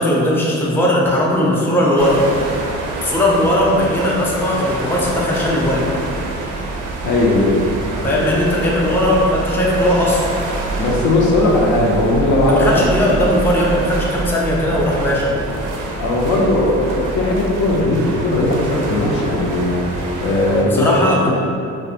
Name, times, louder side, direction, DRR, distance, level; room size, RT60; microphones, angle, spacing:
voice 1, 0.0-2.2 3.0-5.8 8.0-10.3 12.5-15.6 20.6-21.3, left 1 dB, 5° left, -4 dB, 0.4 m, -18 dB
Hollow Wharf, 2.0-20.6, right 2 dB, 85° right, 0.4 m, -26 dB
voice 2, 7.0-7.7 10.8-12.8 14.7-14.8 16.0-21.0 21.3-21.4, left 2 dB, 80° left, -2 dB, 0.5 m, -17 dB
2.3 x 2.1 x 2.6 m, 2.5 s
cardioid pair, 90°, 30 cm